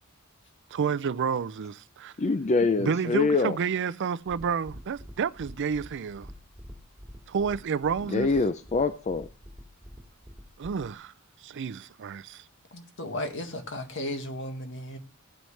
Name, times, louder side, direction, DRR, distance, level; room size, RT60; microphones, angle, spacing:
voice 1, 0.7-2.1 2.8-6.3 7.3-8.3 10.6-11.1 11.4-12.4, right 6 dB, 55° right, 0.4 m, -30 dB
voice 2, 2.2-3.6 8.1-9.3, left 3 dB, 30° left, 0.5 m, -24 dB
sound 1, 4.2-10.9, equal, 5° right, 2.5 m, -47 dB
voice 3, 12.7-15.0, left 1 dB, 60° left, 1.9 m, -35 dB
15.5 x 9.2 x 3.3 m
head